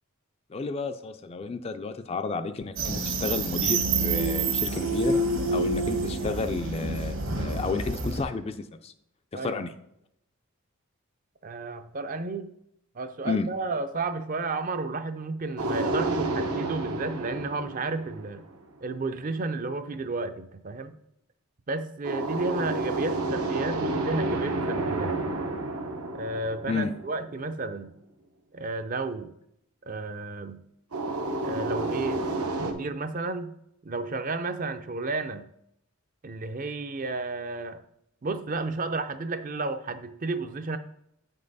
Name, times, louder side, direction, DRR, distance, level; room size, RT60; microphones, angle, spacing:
voice 1, 0.5-5.2 5.5-8.9 9.3-9.7 13.2-13.5 26.7-26.9, left 4 dB, 25° left, 9 dB, 0.3 m, -31 dB
sound 1, 2.8-8.2, right 3 dB, 65° right, 1.3 m, -27 dB
voice 2, 11.4-12.5 13.0-18.4 18.8-20.9 21.7-25.2 26.1-27.9 28.5-29.3 29.9-30.6 31.4-32.2 32.6-33.5 33.8-35.5 36.2-37.8 38.2-40.8, right 3 dB, 40° right, 10 dB, 0.4 m, -32 dB
sound 2, 15.6-18.6 22.0-27.4 30.9-32.7, right 2 dB, 90° right, 1.0 m, -30 dB
7.8 x 5.4 x 4.0 m, 0.77 s
head